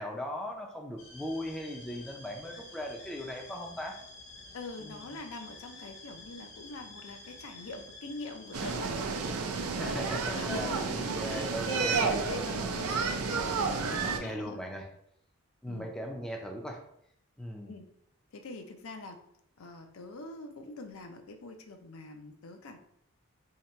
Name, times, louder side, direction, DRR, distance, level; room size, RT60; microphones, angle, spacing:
voice 1, 0.0-4.0 4.8-5.1 9.7-10.8 11.2-12.2 14.0-14.9 15.6-16.8 17.4-17.7, equal, 5° left, 0 dB, 0.4 m, -38 dB
sound 1, 1.0-8.7, left 2 dB, 55° left, 0.9 m, -50 dB
voice 2, 4.5-8.9 9.8-13.2 13.6-14.6 15.7-15.9 17.7-17.9 18.3-19.2 19.6-22.8, left 2 dB, 75° left, 6 dB, 0.5 m, -44 dB
sound 2, 8.5-14.2, right 4 dB, 85° right, 0.5 m, -31 dB
2.8 x 2.8 x 4.4 m, 0.71 s
head